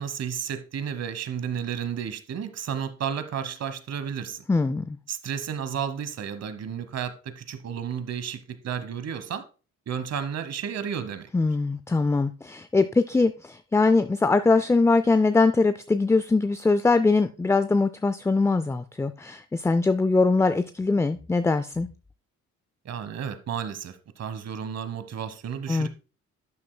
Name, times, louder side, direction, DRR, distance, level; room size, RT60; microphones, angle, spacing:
voice 1, 0.0-4.4 5.1-9.4 9.9-11.3 22.8-25.9, right 8 dB, 55° right, 1.1 m, -32 dB
voice 2, 4.5-5.0 11.3-21.9 25.7-25.9, left 3 dB, 10° left, 0.3 m, -22 dB
11.5 x 7.6 x 2.2 m
cardioid pair, 90°, 30 cm